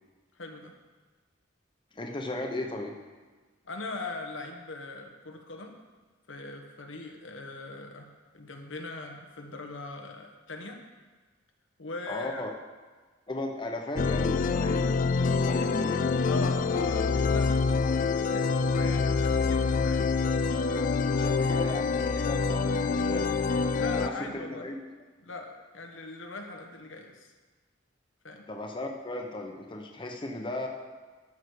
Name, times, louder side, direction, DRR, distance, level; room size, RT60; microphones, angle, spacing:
voice 1, 0.3-0.8 3.6-5.8 6.3-10.8 11.8-12.4 16.3-20.1 23.7-24.7 25.2-27.3 28.2-28.4, left 3 dB, 90° left, 3 dB, 1.2 m, -40 dB
voice 2, 1.9-2.9 12.1-12.5 13.3-16.1 20.4-20.6 21.1-23.3 24.0-24.8 28.5-30.7, left 1 dB, 25° left, 2 dB, 0.9 m, -36 dB
sound 1, 14.0-24.1, left 4 dB, 45° left, 0.3 m, -26 dB
13.0 x 6.5 x 4.7 m, 1.4 s
head